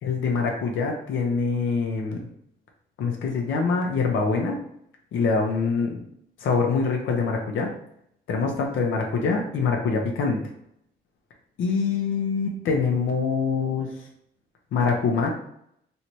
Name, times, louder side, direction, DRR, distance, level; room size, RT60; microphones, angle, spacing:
voice 1, 0.0-2.2 3.0-4.6 5.1-6.0 6.4-7.7 8.3-10.4 11.6-13.9 14.7-15.3, left 4 dB, 75° left, 1 dB, 0.7 m, -24 dB
3.2 x 3.0 x 2.8 m, 0.72 s
cardioid pair, 90°, 20 cm